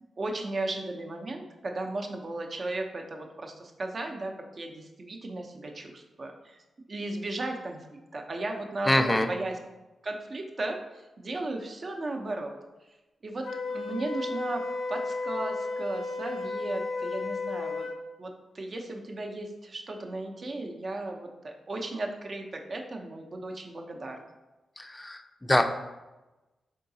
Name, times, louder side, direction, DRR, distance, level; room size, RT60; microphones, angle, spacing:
voice 1, 0.2-6.6 6.9-7.9 8.1-9.5 10.0-12.6 13.2-13.5 13.7-14.6 14.9-24.2, right 2 dB, 45° right, 2 dB, 0.6 m, -35 dB
voice 2, 8.9-9.3 24.8-25.6, left 1 dB, 15° left, 7 dB, 0.4 m, -24 dB
Wind instrument woodwind instrument, 13.4-18.0, left 3 dB, 70° left, 0.5 m, -33 dB
4.7 x 3.7 x 2.7 m, 1.1 s
cardioid pair, 70°, 0 cm